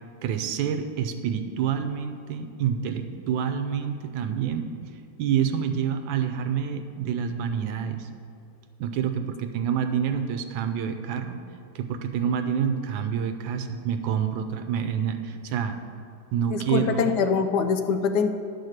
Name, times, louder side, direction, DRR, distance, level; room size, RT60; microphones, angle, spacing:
voice 1, 0.2-4.7 5.2-8.1 8.8-11.4 11.7-15.8 16.3-17.1, right 8 dB, 85° right, 7 dB, 1.4 m, -27 dB
voice 2, 16.5-18.3, left 6 dB, 70° left, 7 dB, 1.1 m, -24 dB
10.5 x 4.6 x 6.5 m, 2.4 s
omnidirectional pair, 2.1 m